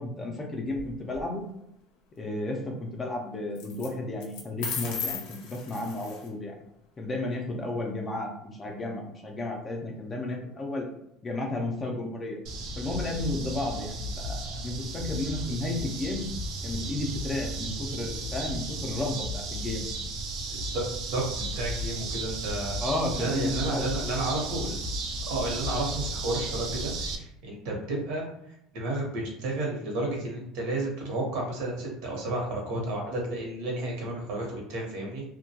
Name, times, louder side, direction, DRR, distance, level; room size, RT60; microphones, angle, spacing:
voice 1, 0.0-1.4 2.2-6.6 7.0-10.9 11.2-12.4 12.8-16.3 16.6-19.9 22.8-23.9, left 2 dB, 20° left, 1 dB, 0.4 m, -33 dB
sound 1, 0.7-1.2 3.5-3.9 4.2-6.3, left 5 dB, 85° left, 0.5 m, -36 dB
sound 2, 12.5-27.2, right 2 dB, 55° right, 0.3 m, -34 dB
voice 2, 20.5-22.8 23.1-24.8 25.3-35.2, right 2 dB, 70° right, -1 dB, 0.9 m, -32 dB
2.2 x 2.1 x 2.7 m, 0.77 s
cardioid pair, 165°, 0 cm